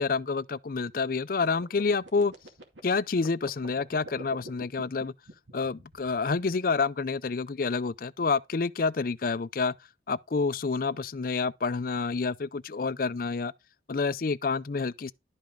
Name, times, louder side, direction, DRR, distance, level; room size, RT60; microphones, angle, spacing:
voice 1, 0.0-2.3 2.8-5.1 5.5-9.7 10.1-13.5 13.9-15.1, left 4 dB, 50° left, 0.5 m, -28 dB
sound 1, 1.4-6.6, right 1 dB, 85° right, 2.3 m, -46 dB
11.5 x 5.4 x 3.8 m
head